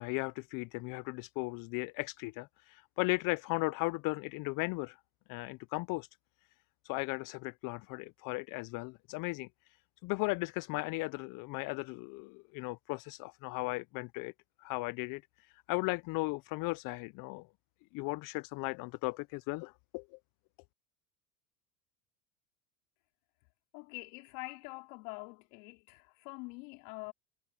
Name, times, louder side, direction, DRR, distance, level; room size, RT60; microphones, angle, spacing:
voice 1, 0.0-5.0 5.3-6.1 6.8-9.5 10.0-14.3 14.6-17.5 17.9-20.0, left 25 dB, 50° left, 0.6 m, -36 dB
voice 2, 23.7-27.1, left 30 dB, 65° left, 3.6 m, -45 dB
hypercardioid pair, 95°, 41 cm